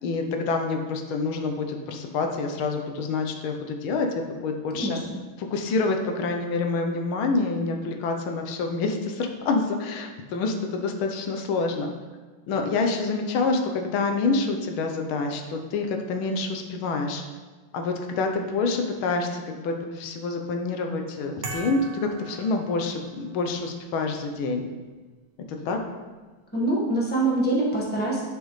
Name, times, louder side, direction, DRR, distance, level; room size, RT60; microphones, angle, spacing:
voice 1, 0.0-4.1 4.4-5.0 5.4-11.9 12.5-17.2 17.7-24.7 25.5-25.8, left 3 dB, 85° left, 4 dB, 1.6 m, -27 dB
sound 1, 21.4-23.3, right 3 dB, 65° right, 0.6 m, -38 dB
voice 2, 26.5-28.2, right 2 dB, 5° left, -5 dB, 1.1 m, -24 dB
10.0 x 5.3 x 3.2 m, 1.3 s
omnidirectional pair, 2.2 m